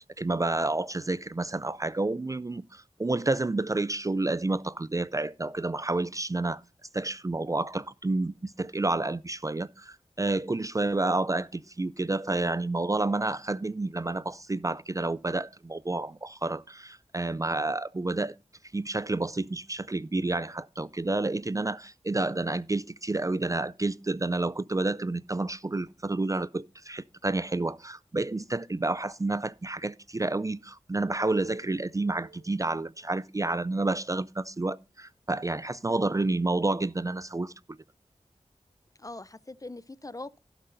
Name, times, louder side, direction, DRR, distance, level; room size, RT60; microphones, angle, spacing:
voice 1, 0.0-6.6 6.9-18.3 18.7-37.5, right 2 dB, 25° right, 0.4 m, -30 dB
sound 1, 31.2-33.8, right 4 dB, 80° right, 3.3 m, -53 dB
voice 2, 35.9-36.2 39.0-40.4, left 2 dB, 30° left, 0.6 m, -42 dB
16.5 x 7.6 x 2.6 m
cardioid pair, 45°, 12 cm